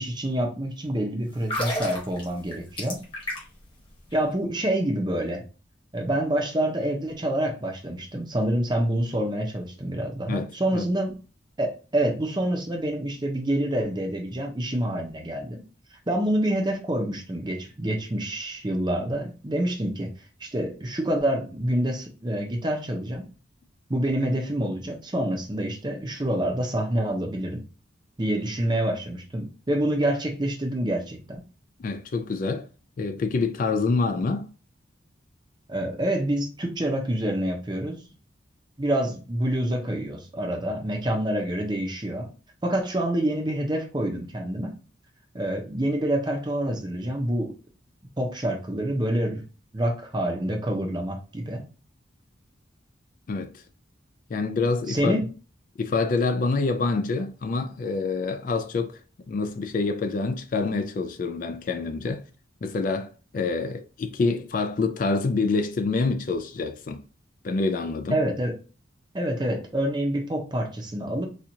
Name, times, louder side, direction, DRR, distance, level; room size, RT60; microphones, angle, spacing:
voice 1, 0.0-3.0 4.1-5.4 5.9-11.1 11.6-15.6 16.1-20.1 20.4-23.2 23.9-27.6 28.2-31.4 35.7-38.0 38.8-42.3 42.6-44.8 45.3-47.6 48.2-49.4 49.7-51.6 54.9-55.2 68.1-68.6 69.1-71.3, right 1 dB, 25° right, 0.7 m, -27 dB
sound 1, 1.3-3.7 4.0-4.2, equal, 25° left, 1.3 m, -32 dB
voice 2, 10.3-10.8 31.8-32.7 33.0-34.5 53.3-53.6 54.3-55.2 55.8-59.0 59.3-62.2 62.6-67.0 67.4-68.2, left 3 dB, 45° left, 0.3 m, -26 dB
4.3 x 2.4 x 2.7 m
head